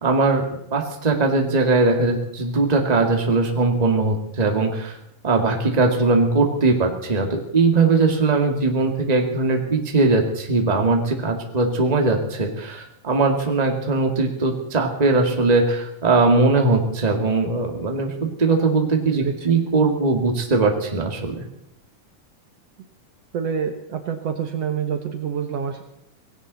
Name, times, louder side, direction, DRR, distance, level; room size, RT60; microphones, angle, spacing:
voice 1, 0.0-4.9 5.2-21.4, right 3 dB, 15° right, 3 dB, 1.8 m, -20 dB
voice 2, 19.1-19.5 23.3-25.8, right 7 dB, 60° right, 6 dB, 2.0 m, -27 dB
18.5 x 17.0 x 4.1 m, 0.79 s
omnidirectional pair, 3.6 m